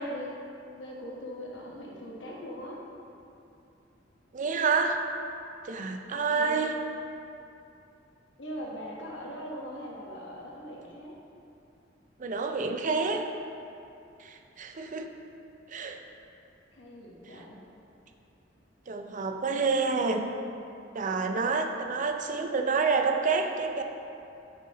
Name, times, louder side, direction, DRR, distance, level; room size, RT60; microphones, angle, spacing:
voice 1, 0.1-0.4 0.7-2.8 6.3-6.7 8.4-11.2 16.7-17.6, equal, 75° left, -3 dB, 1.3 m, -41 dB
voice 2, 4.3-5.0 5.6-6.7 12.2-13.2 14.2-15.1 15.7-16.0 18.9-20.3 20.9-23.8, right 4 dB, 45° right, 4 dB, 0.5 m, -28 dB
9.0 x 5.5 x 3.0 m, 2.6 s
head